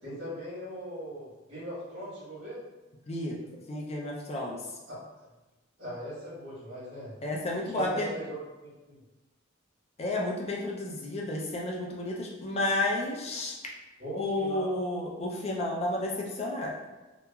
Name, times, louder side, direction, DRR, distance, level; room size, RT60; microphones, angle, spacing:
voice 1, 0.0-2.6 4.9-5.3 5.8-7.1 7.7-9.0 14.0-14.8, equal, 70° right, -8 dB, 1.3 m, -40 dB
voice 2, 3.1-3.4 3.7-4.6 7.2-8.1 10.0-13.6 14.2-16.7, left 1 dB, 30° left, -1 dB, 0.4 m, -31 dB
2.9 x 2.3 x 2.2 m, 1.1 s
head